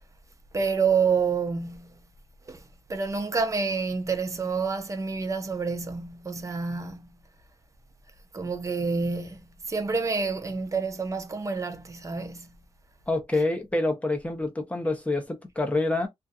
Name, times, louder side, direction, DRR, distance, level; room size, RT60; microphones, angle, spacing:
voice 1, 0.5-2.1 2.5-7.2 8.3-12.6 13.3-13.4, right 5 dB, 25° right, 0.5 m, -28 dB
voice 2, 13.1-16.1, left 2 dB, 10° left, 0.7 m, -27 dB
2.5 x 2.4 x 2.3 m
wide cardioid pair, 135°, 12 cm